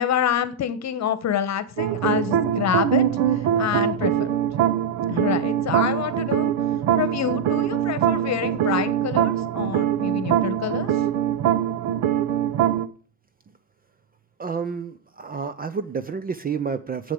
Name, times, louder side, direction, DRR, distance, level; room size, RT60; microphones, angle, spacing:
voice 1, 0.0-3.0 3.3-4.3 5.1-6.5 6.9-10.9, left 9 dB, 40° left, 14 dB, 1.3 m, -27 dB
sound 1, 1.8-12.9, right 10 dB, 50° right, 1.1 m, -23 dB
voice 2, 14.4-17.1, right 6 dB, 20° right, 14 dB, 0.6 m, -29 dB
8.2 x 8.0 x 7.9 m, 0.40 s
supercardioid pair, 115°, 43 cm